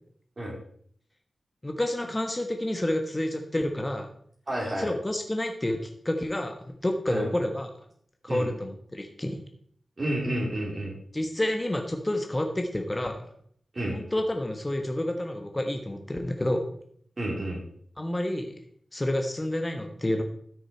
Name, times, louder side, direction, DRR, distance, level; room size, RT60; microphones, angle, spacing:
voice 1, 1.6-4.1 4.8-7.7 8.2-9.4 11.1-13.2 13.9-16.7 18.0-18.5 18.9-20.2, left 1 dB, 20° left, 4 dB, 1.4 m, -29 dB
voice 2, 4.5-4.9 7.1-7.3 8.3-8.5 10.0-11.0 13.7-14.0 17.2-17.6, right 1 dB, 45° right, -4 dB, 3.7 m, -30 dB
13.0 x 6.5 x 4.4 m, 0.62 s
cardioid pair, 55°, 0 cm